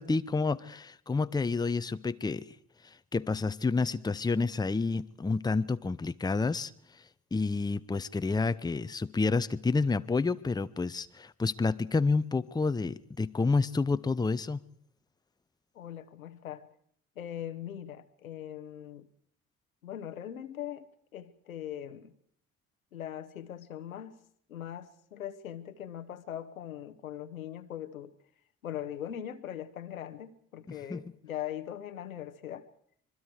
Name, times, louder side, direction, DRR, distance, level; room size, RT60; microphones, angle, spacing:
voice 1, 0.0-2.5 3.1-6.7 7.3-14.6 30.7-31.0, left 4 dB, 10° left, 0.8 m, -29 dB
voice 2, 15.7-16.7 17.2-19.1 19.8-20.9 21.1-22.1 22.9-24.2 24.5-28.1 28.6-32.7, left 10 dB, 80° left, 1.1 m, -40 dB
25.5 x 22.5 x 4.8 m
figure-of-eight pair, 50°, 41 cm